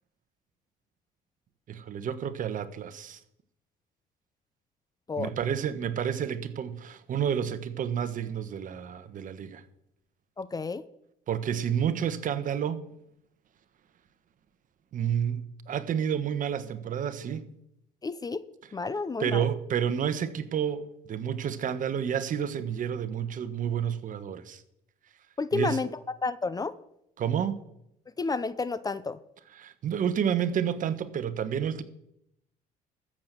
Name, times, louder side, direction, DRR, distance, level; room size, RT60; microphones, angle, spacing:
voice 1, 1.7-3.2 5.2-9.6 11.3-12.8 14.9-17.5 19.2-24.6 25.5-25.8 27.2-27.6 29.5-31.8, right 8 dB, 50° right, 1.2 m, -30 dB
voice 2, 10.4-10.8 18.0-18.4 18.7-19.5 25.4-25.9 26.2-26.7 28.2-29.2, left 4 dB, 20° left, 0.6 m, -30 dB
13.5 x 7.6 x 6.7 m
cardioid pair, 110°, 17 cm